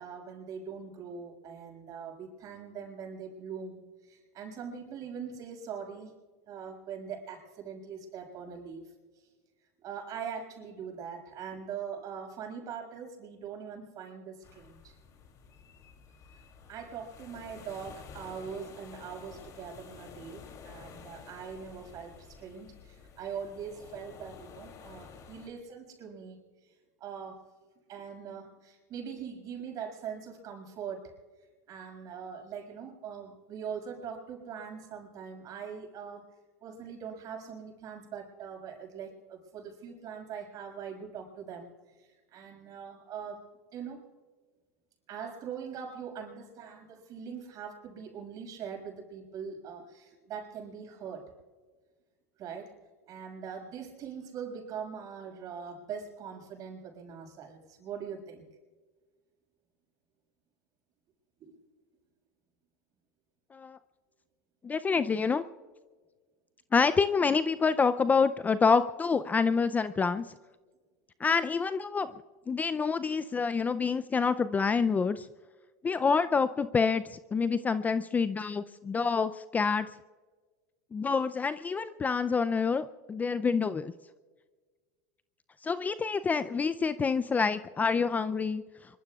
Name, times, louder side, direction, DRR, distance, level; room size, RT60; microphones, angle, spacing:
voice 1, 0.0-6.1 6.5-8.8 9.2-9.3 9.8-15.0 16.7-26.4 27.0-27.4 27.9-31.1 31.7-36.3 36.6-41.7 42.0-43.4 43.7-44.0 45.1-51.3 52.4-52.7 53.1-58.4 61.4-61.6, right 7 dB, 45° right, 2 dB, 6.3 m, -42 dB
sound 1, 14.4-25.5, left 6 dB, 40° left, 2.9 m, -51 dB
voice 2, 64.6-65.4 66.7-70.3 71.2-72.1 72.5-75.3 75.8-79.9 80.9-83.9 85.6-88.6, left 5 dB, 20° left, 12 dB, 0.4 m, -27 dB
25.5 x 23.5 x 2.4 m, 1.4 s
supercardioid pair, 115°, 9 cm